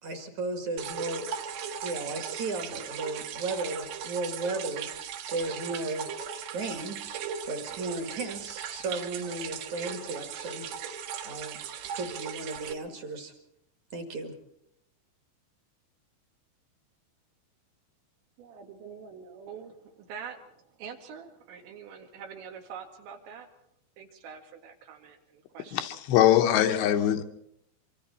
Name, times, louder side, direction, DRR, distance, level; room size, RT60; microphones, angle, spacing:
voice 1, 0.0-1.3 1.7-6.1 6.5-7.0 7.5-10.9 11.2-11.6 11.9-13.3 13.9-14.3, right 3 dB, 50° right, 5 dB, 2.6 m, -35 dB
sound 1, 0.8-12.7, right 8 dB, 70° right, 2.8 m, -38 dB
voice 2, 18.4-23.5 24.0-26.0, right 6 dB, 85° right, 4 dB, 4.2 m, -45 dB
voice 3, 25.7-27.2, left 11 dB, 80° left, 5 dB, 3.3 m, -22 dB
25.5 x 24.5 x 4.3 m, 0.74 s
omnidirectional pair, 5.0 m